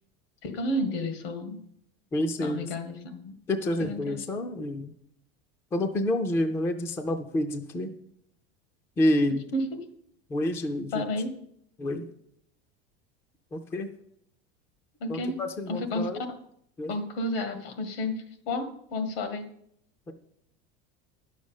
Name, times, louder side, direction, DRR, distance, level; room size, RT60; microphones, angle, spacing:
voice 1, 0.4-1.6 2.4-3.3 3.8-4.3 9.5-9.8 10.9-11.4 15.0-15.4 15.7-16.4 16.9-19.5, left 1 dB, 80° left, 8 dB, 2.0 m, -31 dB
voice 2, 2.1-2.7 3.5-4.9 5.7-7.9 9.0-9.4 10.3-11.0 11.8-12.0 13.5-13.9 15.1-16.2 16.8-16.9, left 1 dB, 10° left, 8 dB, 0.3 m, -28 dB
10.5 x 6.4 x 7.2 m, 0.71 s
cardioid pair, 170°, 29 cm